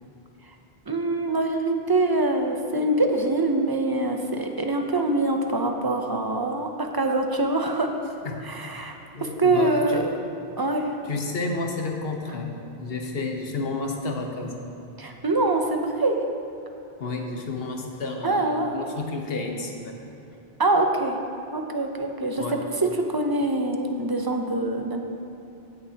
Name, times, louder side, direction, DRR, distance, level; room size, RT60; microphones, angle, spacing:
voice 1, 0.9-7.9 8.4-9.0 9.2-10.0 10.6-11.0 15.0-16.2 18.2-18.8 20.6-21.2 21.5-25.0, right 2 dB, 25° right, 4 dB, 0.5 m, -24 dB
voice 2, 8.2-8.7 9.1-10.0 11.0-14.5 17.0-19.9 22.4-22.6, left 3 dB, 70° left, 2 dB, 1.2 m, -31 dB
16.5 x 6.6 x 2.8 m, 2.9 s
omnidirectional pair, 1.0 m